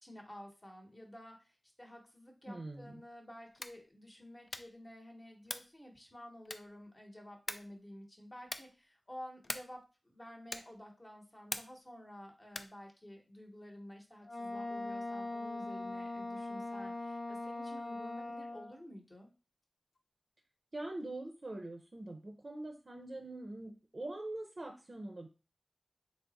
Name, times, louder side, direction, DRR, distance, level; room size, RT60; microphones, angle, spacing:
voice 1, 0.0-19.3, left 1 dB, 30° left, 1 dB, 0.8 m, -52 dB
voice 2, 2.5-3.0 20.7-25.3, right 2 dB, 50° right, 4 dB, 0.5 m, -43 dB
sound 1, 3.5-3.9 4.5-4.8 5.4-5.8 6.5-6.9 7.5-7.8 8.4-8.8 9.4-9.8 10.5-10.8 11.5-11.9 12.5-12.8, left 2 dB, 45° left, 0.3 m, -43 dB
Wind instrument woodwind instrument, 14.2-18.8, left 2 dB, 85° left, 0.7 m, -41 dB
3.5 x 2.0 x 3.9 m, 0.31 s
cardioid pair, 50°, 0 cm